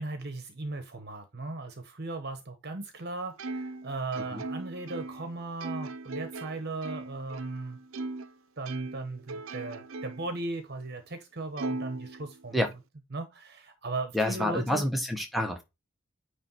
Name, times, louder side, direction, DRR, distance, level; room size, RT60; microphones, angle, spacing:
voice 1, 0.0-7.8 8.6-12.6 13.1-14.8, right 2 dB, 50° right, 1.0 m, -37 dB
Plucked string instrument, 3.4-8.3 8.7-10.4 10.8-10.9 11.6-12.7, right 3 dB, 75° right, 0.7 m, -39 dB
voice 2, 14.1-15.6, left 1 dB, ahead, 1.3 m, -28 dB
9.5 x 3.3 x 4.5 m
head